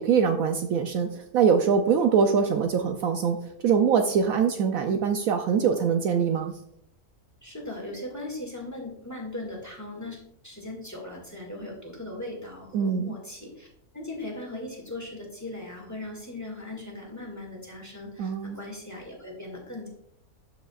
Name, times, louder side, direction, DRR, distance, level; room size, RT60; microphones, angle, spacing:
voice 1, 0.0-6.5 12.7-13.1 18.2-18.6, right 6 dB, 70° right, 5 dB, 1.0 m, -23 dB
voice 2, 7.4-10.2 10.4-13.7 13.9-19.9, left 2 dB, 10° left, -1 dB, 1.9 m, -38 dB
12.5 x 5.1 x 2.4 m, 0.72 s
omnidirectional pair, 1.6 m